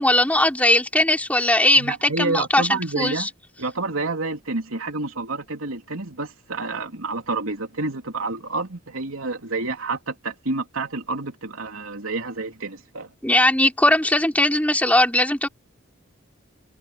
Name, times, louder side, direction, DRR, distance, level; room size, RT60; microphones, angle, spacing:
voice 1, 0.0-3.3 13.2-15.5, left 1 dB, 5° left, 4.0 m, -19 dB
voice 2, 1.7-3.3 3.6-13.1, right 3 dB, 85° right, 3.2 m, -29 dB
head